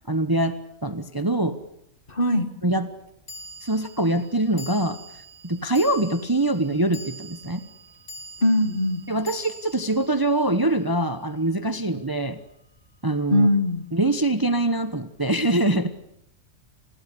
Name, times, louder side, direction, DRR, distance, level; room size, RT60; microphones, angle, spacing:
voice 1, 0.1-0.6 0.8-1.6 2.6-2.9 3.6-5.0 5.4-7.6 9.1-12.4 13.0-13.5 13.9-15.9, right 1 dB, 15° right, 11 dB, 1.1 m, -23 dB
sound 1, 1.2-1.3 3.3-11.7, equal, 55° left, 4.3 m, -44 dB
voice 2, 2.1-2.5 8.4-9.0 13.3-13.9, left 1 dB, 35° left, 10 dB, 2.1 m, -21 dB
30.0 x 20.5 x 8.5 m, 0.73 s
omnidirectional pair, 1.5 m